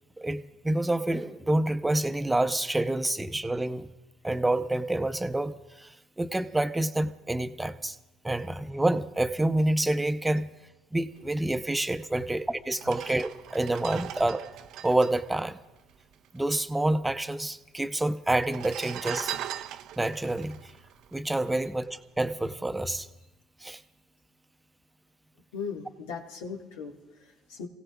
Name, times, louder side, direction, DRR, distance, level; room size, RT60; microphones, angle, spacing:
voice 1, 0.2-3.9 4.2-8.0 8.2-10.5 10.9-14.4 14.8-15.6 16.3-19.3 20.0-20.7 21.1-23.1 23.6-23.8, right 1 dB, 10° right, 10 dB, 0.7 m, -28 dB
sound 1, 12.1-12.2 12.7-16.4 16.7-16.8 17.0-17.7 18.3-21.8 22.3-22.5, right 11 dB, 65° right, 0.4 m, -40 dB
voice 2, 25.5-27.7, left 5 dB, 85° left, 1 dB, 1.8 m, -38 dB
29.5 x 17.0 x 2.4 m, 1.1 s
hypercardioid pair, 70°, 0 cm